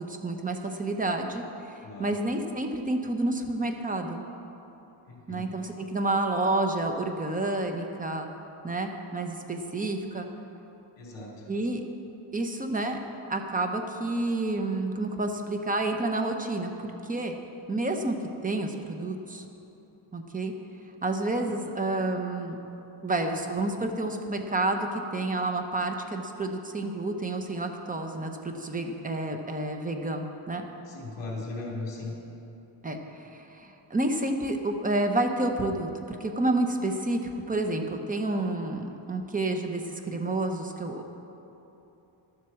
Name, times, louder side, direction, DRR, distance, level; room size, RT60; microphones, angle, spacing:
voice 1, 0.0-1.4 2.0-4.2 5.3-8.3 8.6-10.3 11.5-11.8 12.3-13.0 13.3-17.4 17.7-18.2 18.4-19.5 20.1-20.5 21.0-22.6 23.0-30.6 32.8-41.1, right 2 dB, 15° right, 4 dB, 0.8 m, -29 dB
voice 2, 1.8-2.2 5.0-5.5 11.0-11.5 21.5-21.6 30.8-32.2, left 3 dB, 60° left, -3 dB, 3.1 m, -38 dB
12.0 x 7.8 x 7.0 m, 3.0 s
cardioid pair, 150°, 50 cm